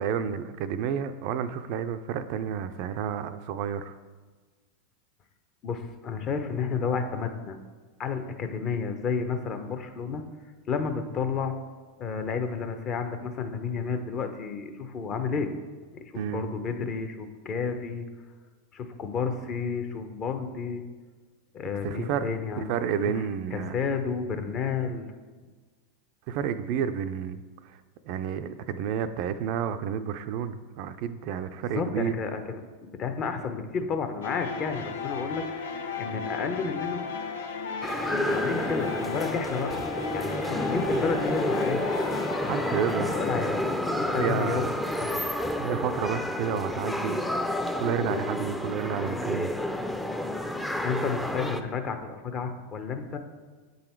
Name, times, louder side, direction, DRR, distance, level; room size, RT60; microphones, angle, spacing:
voice 1, 0.0-3.9 16.1-16.5 21.8-22.3 22.7-23.8 26.3-27.8 28.0-32.1 42.5-43.2 44.2-44.6 45.6-47.3 47.8-49.5, right 8 dB, 55° right, 10 dB, 0.4 m, -30 dB
voice 2, 5.6-7.6 8.0-10.2 10.7-11.5 12.0-15.5 15.9-18.1 18.7-20.8 21.5-22.7 23.5-25.1 31.6-35.4 36.0-37.0 38.3-39.7 40.1-41.9 42.8-44.6 45.0-45.2 50.8-53.2, left 5 dB, 40° left, 7 dB, 0.8 m, -31 dB
sound 1, 34.2-45.1, left 5 dB, 80° left, 0.6 m, -36 dB
sound 2, 37.8-51.6, left 1 dB, 5° left, 0.5 m, -30 dB
8.1 x 4.0 x 4.5 m, 1.4 s
hypercardioid pair, 105°, 0 cm